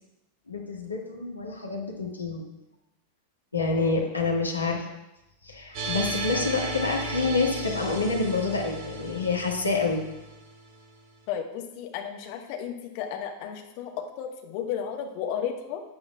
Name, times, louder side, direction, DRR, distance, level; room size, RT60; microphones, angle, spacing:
voice 1, 0.5-2.5 3.5-4.9 5.4-10.0, left 3 dB, 80° left, 0 dB, 1.8 m, -27 dB
voice 2, 3.6-4.1 11.3-15.8, left 8 dB, 45° left, 3 dB, 1.4 m, -34 dB
sound 1, 5.7-10.8, right 2 dB, 45° right, 1.7 m, -34 dB
15.0 x 9.7 x 2.4 m, 0.94 s
figure-of-eight pair, 90°, 0 cm